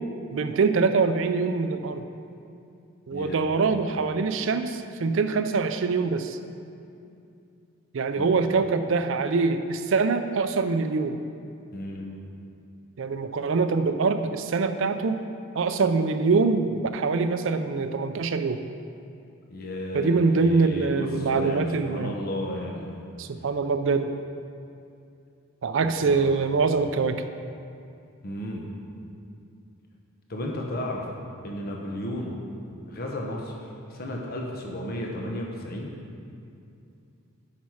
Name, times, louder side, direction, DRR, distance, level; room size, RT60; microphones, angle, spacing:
voice 1, 0.3-2.0 3.1-6.4 7.9-11.2 13.0-15.2 15.5-18.6 19.9-22.1 23.2-24.1 25.6-27.2, right 4 dB, 65° right, 9 dB, 0.4 m, -24 dB
voice 2, 3.1-3.4 8.2-8.3 11.7-12.1 19.5-23.0 25.8-26.4 28.2-28.7 30.3-31.1 31.4-32.4 32.9-35.9, left 1 dB, 45° left, 0 dB, 0.9 m, -34 dB
8.3 x 6.0 x 4.7 m, 2.6 s
head